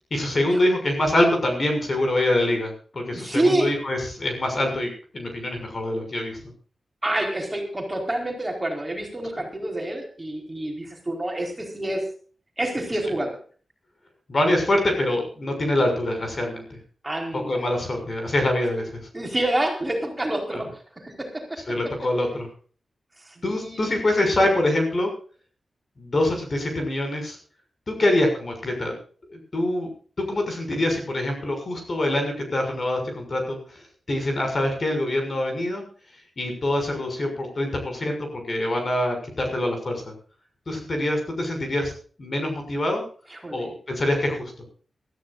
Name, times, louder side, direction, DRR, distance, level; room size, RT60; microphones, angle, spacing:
voice 1, 0.1-6.4 14.3-16.6 17.5-18.9 20.5-20.6 21.7-22.5 23.4-25.1 26.0-27.4 27.9-28.9 29.5-29.9 30.2-33.6 34.1-35.8 36.4-40.0 40.7-41.9 42.2-43.0 43.5-44.5, left 1 dB, 45° left, 4 dB, 6.6 m, -24 dB
voice 2, 3.1-3.7 7.0-12.0 12.6-13.4 17.0-17.7 19.1-21.6 23.2-23.9 43.3-43.7, right 1 dB, 20° right, 1 dB, 4.5 m, -28 dB
23.5 x 14.0 x 2.6 m, 0.43 s
wide cardioid pair, 100°, 0 cm